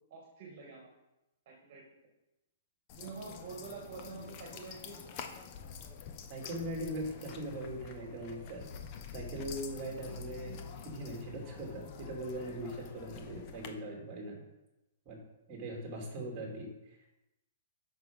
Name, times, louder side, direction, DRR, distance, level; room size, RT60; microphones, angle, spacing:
voice 1, 0.1-0.9 1.5-1.8 3.0-5.1, right 4 dB, 45° right, -1 dB, 2.1 m, -47 dB
sound 1, 2.9-13.7, left 6 dB, 35° left, 0.9 m, -47 dB
voice 2, 6.3-8.6 9.1-10.6 10.8-14.4 15.0-15.2 15.5-16.7, right 1 dB, 25° right, -1 dB, 3.0 m, -40 dB
7.9 x 6.1 x 5.6 m, 0.96 s
hypercardioid pair, 155°, 0 cm